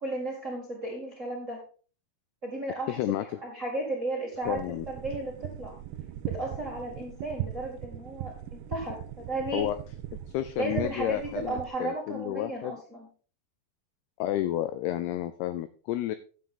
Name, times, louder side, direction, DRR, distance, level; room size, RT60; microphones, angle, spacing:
voice 1, 0.0-1.6 2.4-4.6 4.9-5.7 6.2-9.7 10.6-13.1, right 2 dB, 35° right, -2 dB, 1.3 m, -34 dB
voice 2, 2.9-3.3 4.5-4.9 9.5-9.8 10.3-12.8 14.2-16.2, left 13 dB, 85° left, 12 dB, 2.3 m, -31 dB
sound 1, 4.4-11.7, right 12 dB, 80° right, 2.2 m, -39 dB
11.5 x 7.5 x 3.8 m, 0.39 s
omnidirectional pair, 5.2 m